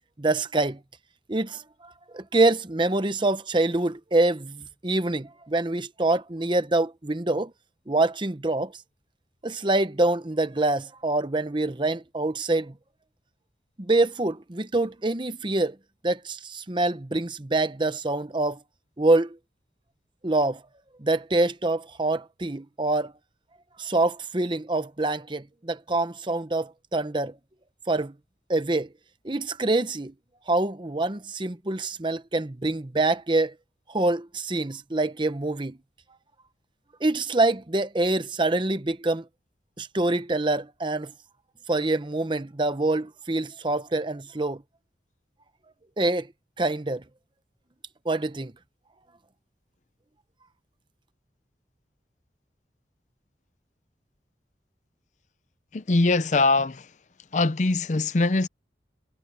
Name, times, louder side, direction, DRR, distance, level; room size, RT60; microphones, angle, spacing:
voice 1, 0.2-0.8 1.3-1.6 2.1-7.5 7.9-8.7 9.4-12.7 13.9-15.7 16.0-18.6 19.0-19.4 20.2-20.6 21.0-23.1 23.8-27.3 27.9-28.1 28.5-28.9 29.2-30.1 30.5-33.5 33.9-35.8 37.0-39.2 39.8-41.1 41.7-44.6 46.0-46.3 46.6-47.0 48.1-48.5, right 2 dB, 25° right, 0.9 m, -25 dB
voice 2, 55.7-56.9 57.3-58.5, left 3 dB, 45° left, 0.6 m, -22 dB
head